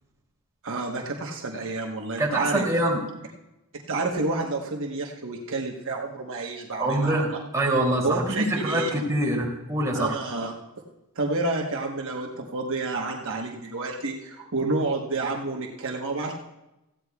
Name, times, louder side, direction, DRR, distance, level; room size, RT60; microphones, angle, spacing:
voice 1, 0.6-2.6 3.7-7.2 8.0-8.9 9.9-10.5 11.1-16.3, right 3 dB, 65° right, 0 dB, 1.2 m, -29 dB
voice 2, 2.2-3.0 6.8-10.1, right 1 dB, 15° right, -4 dB, 2.8 m, -25 dB
18.0 x 15.0 x 2.3 m, 0.94 s
head